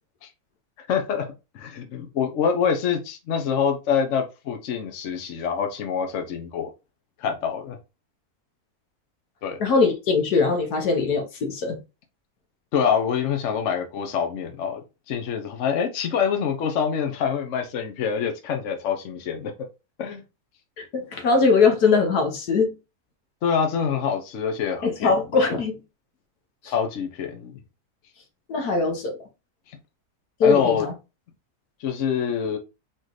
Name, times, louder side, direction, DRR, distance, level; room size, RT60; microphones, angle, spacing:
voice 1, 0.8-1.2 1.5-6.7 7.2-7.8 9.4-9.6 12.7-14.8 15.1-19.5 20.0-20.2 23.4-25.2 26.7-27.6 30.4-30.9 31.8-32.6, left 7 dB, 55° left, 1.1 m, -25 dB
voice 2, 9.6-11.8 20.8-22.7 24.8-25.8 26.6-26.7 28.5-29.2 30.4-30.9, left 4 dB, 80° left, 1.6 m, -21 dB
4.3 x 3.2 x 3.9 m
omnidirectional pair, 1.6 m